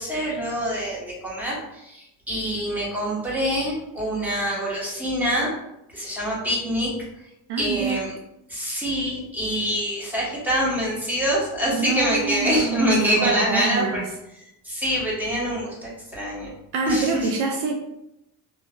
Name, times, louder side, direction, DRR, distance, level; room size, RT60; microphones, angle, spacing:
voice 1, 0.0-5.5 5.9-6.9 7.6-8.1 8.5-14.0 14.6-16.5 16.9-17.3, equal, 5° right, -6 dB, 1.0 m, -25 dB
voice 2, 7.5-8.0 11.8-14.0 16.7-17.8, right 5 dB, 70° right, 2 dB, 0.5 m, -26 dB
3.1 x 2.2 x 2.2 m, 0.86 s
cardioid pair, 105°, 43 cm